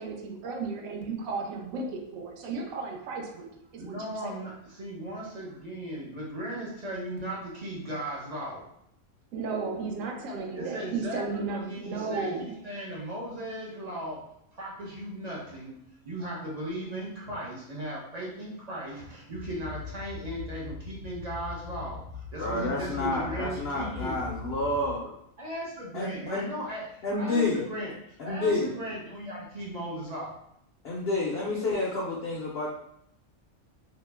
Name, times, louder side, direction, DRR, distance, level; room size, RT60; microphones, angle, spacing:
voice 1, 0.0-3.5 3.7-4.4 9.3-12.7, right 4 dB, 70° right, 1 dB, 0.9 m, -34 dB
voice 2, 3.8-8.6 10.5-14.2 14.6-15.8 16.0-22.0 22.3-24.3 25.4-26.9 27.2-27.9 28.2-30.3, right 1 dB, 45° right, -4 dB, 0.5 m, -37 dB
sound 1, 19.3-25.0, left 4 dB, 80° left, 1.0 m, -41 dB
voice 3, 22.4-25.0 25.9-26.5 27.0-27.6 28.2-28.7 30.8-32.7, left 2 dB, 65° left, -3 dB, 0.6 m, -29 dB
2.8 x 2.0 x 3.3 m, 0.74 s
omnidirectional pair, 1.5 m